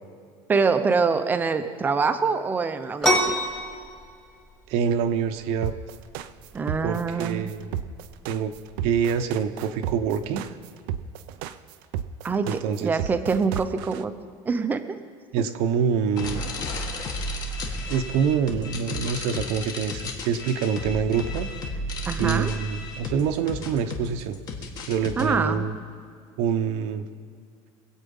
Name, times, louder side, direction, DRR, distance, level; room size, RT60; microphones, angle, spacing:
voice 1, 0.5-3.3 6.5-7.5 12.2-14.1 14.5-15.0 22.0-22.5 25.2-25.7, right 4 dB, 15° right, 9 dB, 0.7 m, -25 dB
sound 1, 3.0-10.4, equal, 5° left, 1.6 m, -30 dB
voice 2, 4.7-5.7 6.8-7.7 8.3-8.5 8.8-10.6 12.5-13.0 15.3-16.4 17.9-21.5 22.1-24.4 24.9-25.7 26.4-27.1, right 7 dB, 65° right, 7 dB, 0.9 m, -26 dB
sound 2, 5.6-14.0, right 10 dB, 85° right, 0.6 m, -33 dB
sound 3, 16.2-25.2, left 2 dB, 35° left, 1.6 m, -33 dB
23.0 x 8.4 x 5.5 m, 2.3 s
cardioid pair, 160°, 11 cm